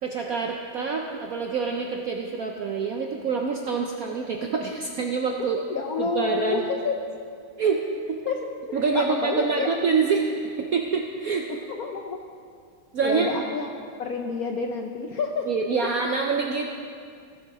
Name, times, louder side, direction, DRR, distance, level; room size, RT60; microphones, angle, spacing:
voice 1, 0.0-5.6 6.0-6.6 7.6-7.8 8.1-8.2 8.7-11.5 12.9-13.3 15.5-16.8, right 5 dB, 70° right, 2 dB, 0.8 m, -26 dB
voice 2, 5.7-7.0 8.2-9.7 11.7-12.2 13.0-13.7 14.0-15.5, left 5 dB, 65° left, 2 dB, 0.9 m, -29 dB
16.5 x 7.4 x 4.8 m, 2.3 s
omnidirectional pair, 2.2 m